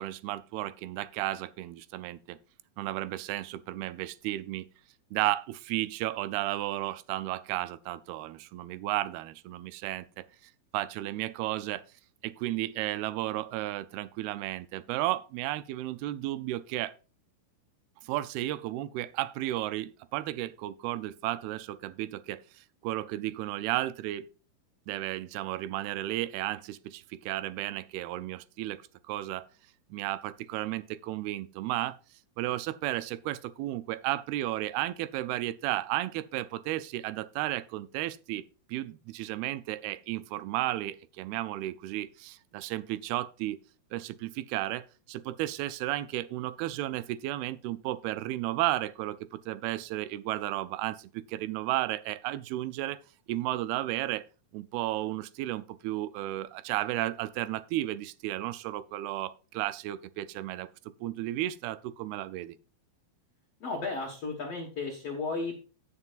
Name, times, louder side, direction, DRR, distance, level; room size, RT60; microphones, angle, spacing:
voice 1, 0.0-2.4 2.8-4.7 5.1-10.3 10.7-11.8 12.2-16.9 18.0-24.3 24.9-28.8 29.1-29.5 29.9-32.0 32.4-38.4 38.7-43.6 43.9-53.0 53.3-54.2 54.5-60.7 61.0-62.6, right 15 dB, 85° right, 2.5 m, -33 dB
voice 2, 63.6-65.6, left 3 dB, 55° left, 2.0 m, -34 dB
16.0 x 6.8 x 2.5 m
omnidirectional pair, 4.4 m